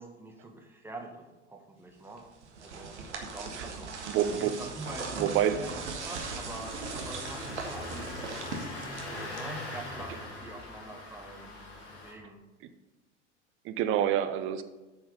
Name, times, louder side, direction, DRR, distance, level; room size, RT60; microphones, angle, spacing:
voice 1, 0.0-2.3 2.6-3.0 3.3-3.9 4.4-5.7 6.0-8.1 8.9-12.4, right 2 dB, 5° right, 2 dB, 1.5 m, -44 dB
sound 1, 2.2-10.0, right 4 dB, 70° right, 1.6 m, -39 dB
voice 2, 4.1-4.5 5.2-5.6 13.6-14.6, right 10 dB, 35° right, 10 dB, 0.8 m, -27 dB
Engine starting, 6.0-12.1, left 2 dB, 65° left, 2.2 m, -42 dB
9.1 x 6.4 x 5.1 m, 1.1 s
figure-of-eight pair, 80°, 36 cm